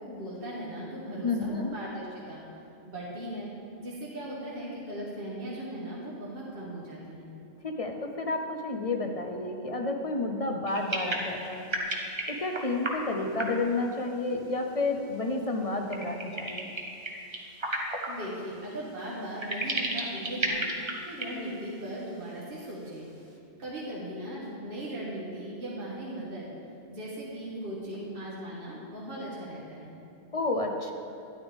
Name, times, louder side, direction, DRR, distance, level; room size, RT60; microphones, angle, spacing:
voice 1, 0.0-2.4 2.9-3.5 3.8-7.3 18.1-20.7 21.0-23.1 23.6-26.5 26.9-30.0, right 1 dB, 55° right, -6 dB, 1.8 m, -38 dB
voice 2, 1.2-1.7 7.6-11.7 12.3-16.7 30.3-30.9, left 2 dB, 35° left, 4 dB, 0.7 m, -30 dB
sound 1, 10.7-13.0 13.4-13.6 15.9-18.1 18.7-18.8 19.4-21.3 21.6-21.7 21.9-22.0, right 1 dB, 25° right, 1.0 m, -32 dB
12.5 x 10.5 x 3.5 m, 2.7 s
omnidirectional pair, 1.2 m